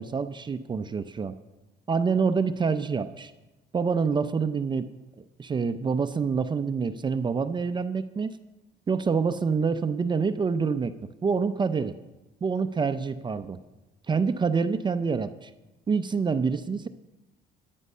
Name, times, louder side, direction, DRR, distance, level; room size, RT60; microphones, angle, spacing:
voice 1, 0.0-1.4 1.9-3.3 3.7-4.9 5.4-8.3 8.9-10.9 11.2-11.9 12.4-13.6 14.1-15.5 15.9-16.9, right 5 dB, 25° right, 10 dB, 0.6 m, -26 dB
14.0 x 11.0 x 5.5 m, 1.1 s
cardioid pair, 110°, 17 cm